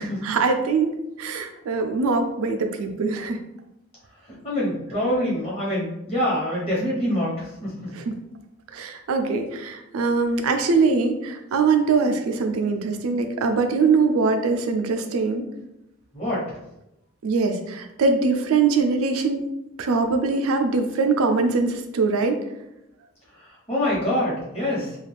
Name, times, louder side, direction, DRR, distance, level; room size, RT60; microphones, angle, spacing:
voice 1, 0.0-3.4 7.9-8.2 8.7-15.4 17.2-19.4 19.8-22.4, right 4 dB, 80° right, 6 dB, 0.4 m, -22 dB
voice 2, 4.3-7.9 16.1-16.6 23.4-25.0, left 1 dB, 25° left, -7 dB, 1.0 m, -25 dB
2.4 x 2.2 x 3.3 m, 0.87 s
head